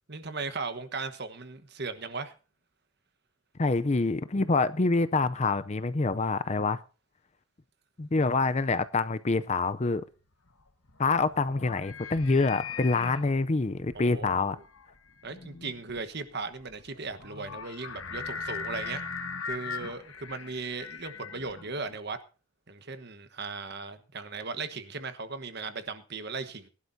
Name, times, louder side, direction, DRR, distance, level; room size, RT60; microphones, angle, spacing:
voice 1, 0.1-2.3 13.9-14.6 15.2-19.0 19.5-22.2 22.7-26.7, right 4 dB, 50° right, 1.2 m, -37 dB
voice 2, 3.6-6.8 8.0-10.0 11.0-14.6, left 3 dB, 30° left, 0.5 m, -26 dB
sound 1, 10.5-22.0, left 5 dB, 65° left, 1.4 m, -40 dB
21.5 x 11.5 x 2.7 m
head